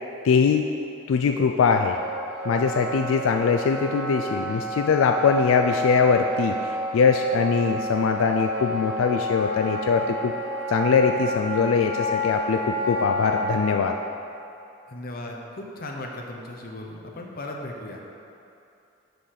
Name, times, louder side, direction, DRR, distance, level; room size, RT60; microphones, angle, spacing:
voice 1, 0.2-0.7 1.1-2.0 2.4-10.3 10.7-13.9, left 5 dB, 85° left, 4 dB, 0.3 m, -22 dB
Wind instrument woodwind instrument, 1.7-13.8, right 1 dB, 60° right, 0.8 m, -30 dB
voice 2, 14.9-18.0, left 1 dB, 50° left, 0 dB, 0.8 m, -36 dB
6.8 x 3.9 x 6.4 m, 2.8 s
head